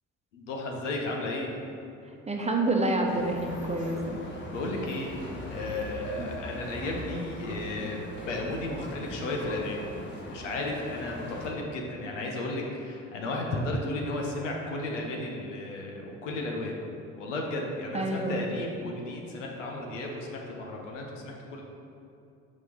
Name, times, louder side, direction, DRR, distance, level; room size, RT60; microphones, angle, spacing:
voice 1, 0.3-1.5 4.5-5.1 5.5-9.9 10.3-16.8 17.2-21.6, left 2 dB, 70° left, 0 dB, 1.1 m, -34 dB
voice 2, 2.3-4.2 6.2-6.3 17.9-18.4, right 2 dB, 15° right, 1 dB, 1.1 m, -28 dB
sound 1, 3.1-11.5, equal, 30° left, 1.7 m, -41 dB
6.4 x 5.3 x 6.2 m, 2.7 s
figure-of-eight pair, 50°, 38 cm